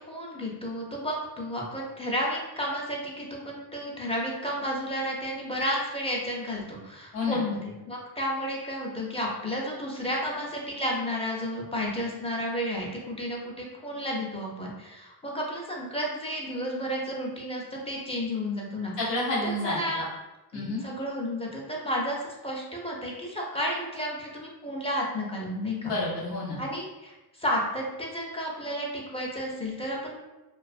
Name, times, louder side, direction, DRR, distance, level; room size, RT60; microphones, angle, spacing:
voice 1, 0.0-18.9 19.6-20.1 20.5-25.9 26.6-30.2, equal, 15° left, -2 dB, 0.5 m, -32 dB
voice 2, 19.0-20.0 20.5-20.8 25.8-26.6, left 2 dB, 90° left, -6 dB, 0.9 m, -29 dB
2.4 x 2.3 x 2.4 m, 1.0 s
cardioid pair, 90°, 41 cm